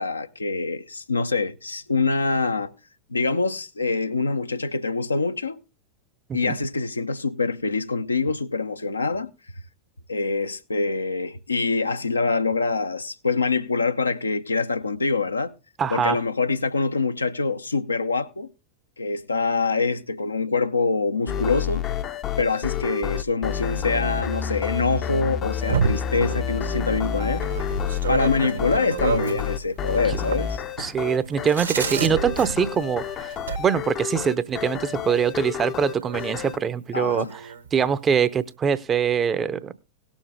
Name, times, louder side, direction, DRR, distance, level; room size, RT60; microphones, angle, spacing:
voice 1, 0.0-2.7 3.1-5.6 6.3-9.3 10.1-15.5 15.9-18.5 19.0-21.8 22.4-27.4 28.1-30.6 36.9-37.3, left 4 dB, 80° left, 0.8 m, -25 dB
voice 2, 15.8-16.2 30.8-37.4 37.7-39.8, right 7 dB, 25° right, 0.7 m, -23 dB
sound 1, 21.3-36.6, left 9 dB, 30° left, 0.7 m, -30 dB
sound 2, 25.4-33.6 35.4-35.5 35.8-36.6 37.0-37.7, right 6 dB, 75° right, 2.0 m, -30 dB
18.0 x 7.2 x 3.6 m
figure-of-eight pair, 90°, 0 cm